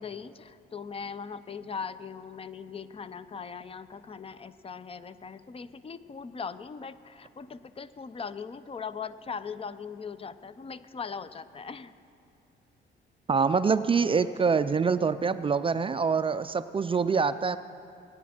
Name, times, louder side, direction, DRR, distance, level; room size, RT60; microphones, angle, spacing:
voice 1, 0.0-11.9, left 6 dB, 30° left, 14 dB, 0.5 m, -40 dB
voice 2, 13.3-17.6, right 5 dB, 25° right, 12 dB, 0.3 m, -25 dB
20.5 x 9.4 x 4.3 m, 2.7 s
cardioid pair, 90°, 20 cm